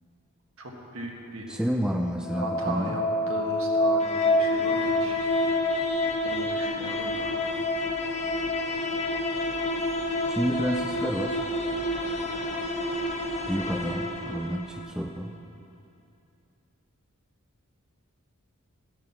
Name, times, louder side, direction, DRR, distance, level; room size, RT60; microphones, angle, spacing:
voice 1, 0.6-1.5 2.4-5.2 6.2-7.4 12.2-12.3, right 2 dB, 65° right, 0 dB, 1.7 m, -37 dB
voice 2, 1.5-3.0 10.3-11.4 13.5-15.4, equal, 5° right, 3 dB, 0.4 m, -29 dB
sound 1, 2.1-15.0, left 1 dB, 30° left, 0.8 m, -28 dB
13.0 x 8.7 x 5.9 m, 2.6 s
head